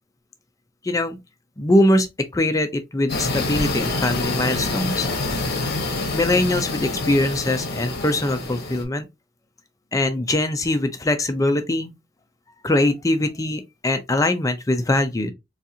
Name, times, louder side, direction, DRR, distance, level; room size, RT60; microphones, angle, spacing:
voice 1, 0.8-1.2 1.6-2.1 2.3-5.7 6.1-9.1 9.9-11.9 12.6-15.3, left 1 dB, 15° left, 0.5 m, -22 dB
sound 1, 3.1-8.8, left 2 dB, 55° left, 0.9 m, -26 dB
3.9 x 2.4 x 2.7 m
head